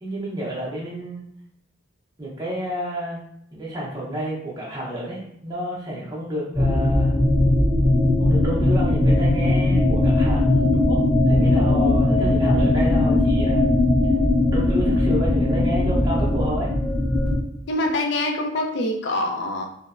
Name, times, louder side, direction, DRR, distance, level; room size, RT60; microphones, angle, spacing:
voice 1, 0.0-1.2 2.2-3.2 3.5-7.2 8.2-11.0 11.3-13.7 14.5-16.7, right 1 dB, 20° right, -6 dB, 0.6 m, -30 dB
sound 1, 6.5-17.4, left 2 dB, 10° left, 0.8 m, -19 dB
voice 2, 17.7-19.6, left 1 dB, 60° left, 2 dB, 0.4 m, -24 dB
3.0 x 2.1 x 2.4 m, 0.74 s
head